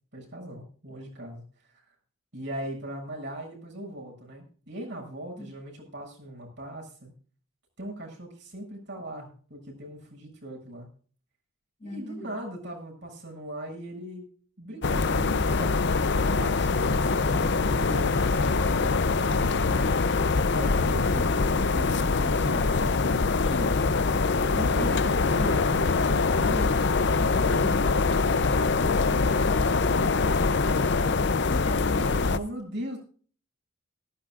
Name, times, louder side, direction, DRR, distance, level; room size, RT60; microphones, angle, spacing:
voice 1, 0.1-1.4 2.3-7.1 7.8-10.9 11.8-14.3 14.6-20.0 20.5-23.0 24.6-31.2 32.3-33.0, right 1 dB, 55° right, 0 dB, 7.1 m, -39 dB
voice 2, 11.8-12.3 21.8-22.0 23.4-24.2 31.5-32.3, left 1 dB, 30° left, 2 dB, 2.8 m, -39 dB
sound 1, 14.8-32.4, left 4 dB, 55° left, 0.7 m, -24 dB
18.0 x 15.5 x 2.5 m, 0.43 s
head